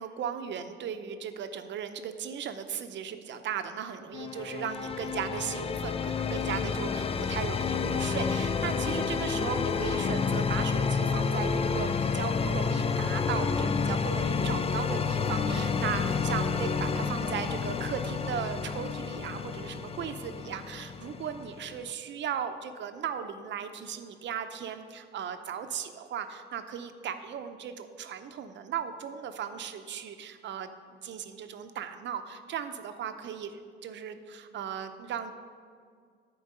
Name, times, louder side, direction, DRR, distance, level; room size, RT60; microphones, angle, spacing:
voice 1, 0.0-30.7 31.0-35.3, right 8 dB, 65° right, 8 dB, 0.7 m, -37 dB
sound 1, 4.1-21.9, left 5 dB, 30° left, 0.5 m, -30 dB
9.7 x 4.6 x 6.6 m, 2.1 s
cardioid pair, 90°, 20 cm